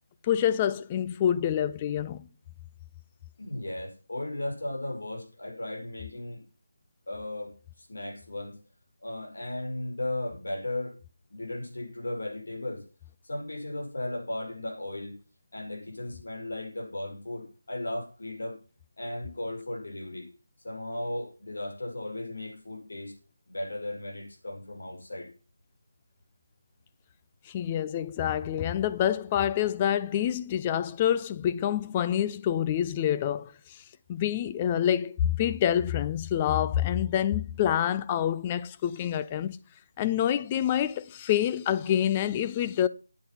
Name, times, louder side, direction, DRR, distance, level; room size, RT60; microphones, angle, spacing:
voice 1, 0.3-2.3 27.5-33.5 34.1-39.6 40.0-42.9, left 10 dB, 15° left, 0.5 m, -27 dB
voice 2, 3.4-6.4 7.1-7.5 7.8-8.6 9.0-11.0 11.3-12.8 13.2-15.2 15.5-18.6 19.0-20.3 20.6-23.1 23.5-25.3, left 1 dB, 65° left, 5.5 m, -36 dB
9.5 x 8.5 x 5.9 m
figure-of-eight pair, 165°, 0 cm